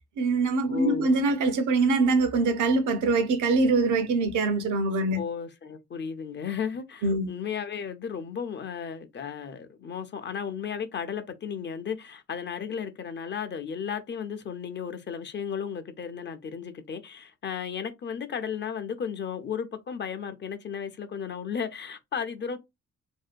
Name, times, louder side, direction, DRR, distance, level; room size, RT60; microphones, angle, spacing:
voice 1, 0.2-5.2 7.0-7.3, right 3 dB, 75° right, 0.7 m, -23 dB
voice 2, 0.7-1.1 5.1-22.6, left 7 dB, 40° left, 0.5 m, -34 dB
2.7 x 2.2 x 2.4 m
cardioid pair, 90°, 30 cm